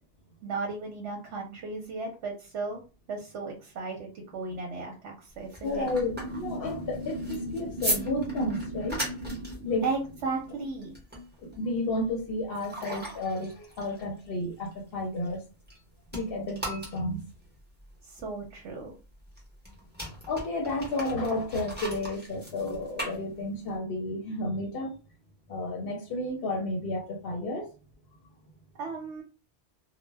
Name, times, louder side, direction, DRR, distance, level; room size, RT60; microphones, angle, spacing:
voice 1, 0.4-2.8 3.1-5.9 9.8-10.9 18.0-18.9 28.8-29.2, right 4 dB, 75° right, 0.9 m, -35 dB
sound 1, 5.3-15.8 16.1-23.8, right 1 dB, 10° right, 0.8 m, -39 dB
voice 2, 5.6-9.0 9.3-9.9 11.4-15.4 16.1-17.2 20.1-25.0 25.5-27.7, left 2 dB, 60° left, 0.7 m, -32 dB
sound 2, 5.8-10.8, equal, 55° right, 0.6 m, -38 dB
2.1 x 2.1 x 3.2 m
omnidirectional pair, 1.2 m